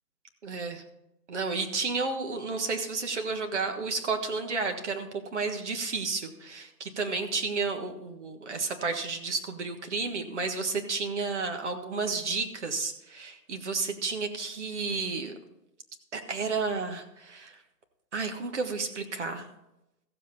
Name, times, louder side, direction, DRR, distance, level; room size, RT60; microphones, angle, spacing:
voice 1, 0.4-0.8 1.3-15.3 16.1-17.6 18.1-19.5, right 4 dB, 45° right, 5 dB, 1.5 m, -32 dB
14.5 x 7.6 x 4.3 m, 0.90 s
hypercardioid pair, 165°, 49 cm